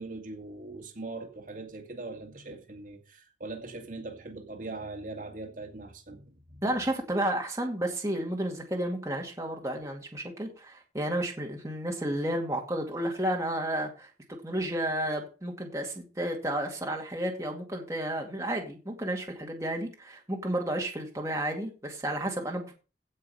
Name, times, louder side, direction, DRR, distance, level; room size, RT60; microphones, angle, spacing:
voice 1, 0.0-6.7, right 2 dB, 50° right, 2.2 m, -41 dB
voice 2, 6.6-14.1 14.4-22.7, right 1 dB, 15° right, 2.2 m, -32 dB
16.5 x 5.5 x 5.6 m
head